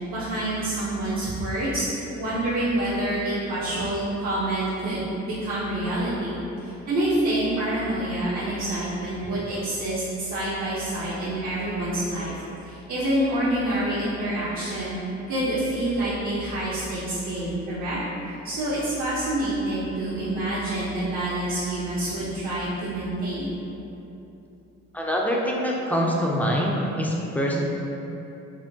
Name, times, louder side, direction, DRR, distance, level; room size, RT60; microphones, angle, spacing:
voice 1, 0.1-12.3 12.6-15.0 15.3-18.0 18.4-23.5, right 1 dB, 75° right, -11 dB, 0.8 m, -27 dB
voice 2, 24.9-27.6, equal, 5° left, -3 dB, 0.4 m, -24 dB
4.2 x 2.1 x 2.7 m, 2.9 s
cardioid pair, 90°, 30 cm